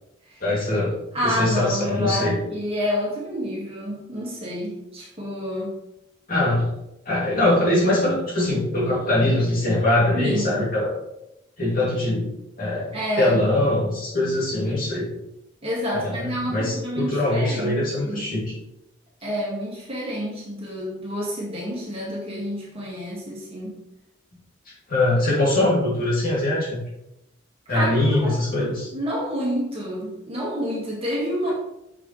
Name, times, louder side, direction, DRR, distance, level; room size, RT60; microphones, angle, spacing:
voice 1, 0.4-1.0 1.2-2.4 6.3-6.7 7.0-10.9 11.6-15.1 15.9-18.5 24.9-26.9 27.7-28.9, left 1 dB, 45° left, -6 dB, 2.7 m, -22 dB
voice 2, 1.1-5.8 10.1-10.6 12.9-13.4 15.6-18.3 19.2-23.7 27.7-28.3 28.9-31.5, equal, 30° right, -5 dB, 2.1 m, -28 dB
6.7 x 6.2 x 3.3 m, 0.85 s
head